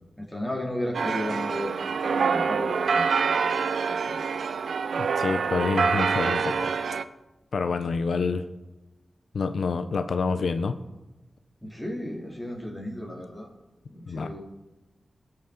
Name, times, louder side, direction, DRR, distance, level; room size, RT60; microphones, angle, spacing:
voice 1, 0.2-1.8 2.0-4.2 11.6-13.5 13.9-14.4, left 1 dB, 15° left, -1 dB, 2.8 m, -34 dB
sound 1, 0.9-7.0, right 5 dB, 85° right, 0.4 m, -26 dB
voice 2, 5.0-6.7 7.5-8.4 9.3-10.8 14.1-14.3, left 4 dB, 80° left, 9 dB, 0.4 m, -27 dB
16.5 x 5.8 x 3.7 m, 1.1 s
cardioid pair, 60°, 0 cm